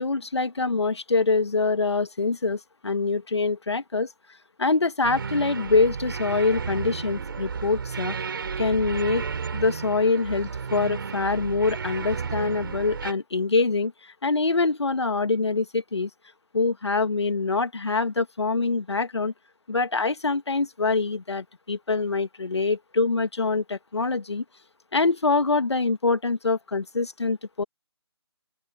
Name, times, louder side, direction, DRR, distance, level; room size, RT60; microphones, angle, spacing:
voice 1, 0.0-4.1 4.6-8.1 8.6-9.2 9.5-16.1 16.5-19.3 19.7-24.4 24.9-27.6, left 3 dB, 75° left, 2.0 m, -25 dB
sound 1, 5.0-13.1, right 6 dB, 55° right, 6.1 m, -32 dB
open air
figure-of-eight pair, 150°, 14 cm